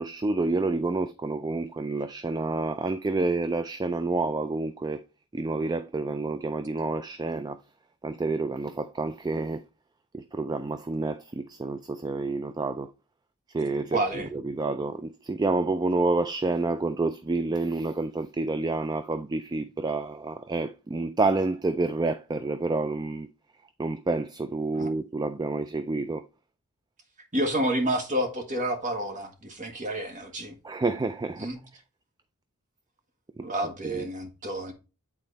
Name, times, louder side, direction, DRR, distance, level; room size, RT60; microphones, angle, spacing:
voice 1, 0.0-5.0 5.3-7.6 8.0-9.6 10.1-12.9 13.5-23.3 23.8-26.2 30.6-31.5 33.4-33.5 33.8-34.1, right 3 dB, 20° right, 0.3 m, -29 dB
voice 2, 13.9-14.3 24.7-24.9 27.3-30.5 31.4-31.6 33.4-34.7, right 1 dB, 35° right, 1.6 m, -29 dB
8.4 x 4.2 x 4.1 m
head